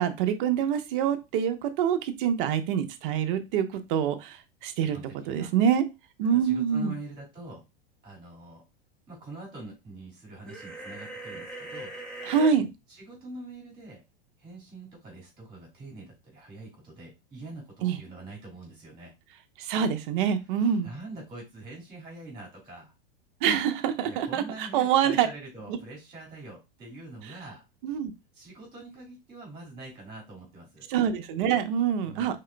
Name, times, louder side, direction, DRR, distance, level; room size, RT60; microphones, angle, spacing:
voice 1, 0.0-5.0 5.3-5.8 6.2-6.9 12.3-12.7 17.8-18.0 19.6-20.9 23.4-25.3 25.7-25.8 27.8-28.1 30.9-32.4, right 8 dB, 60° right, 8 dB, 0.9 m, -26 dB
voice 2, 4.8-5.5 6.3-7.6 8.0-8.6 9.1-11.9 12.9-14.0 14.4-19.1 20.8-22.9 24.0-27.6 28.3-30.9 32.0-32.4, right 2 dB, 15° right, -2 dB, 2.7 m, -44 dB
sound 1, 10.4-12.5, right 1 dB, 5° left, 1.7 m, -40 dB
4.8 x 3.7 x 2.2 m, 0.24 s
hypercardioid pair, 110°, 29 cm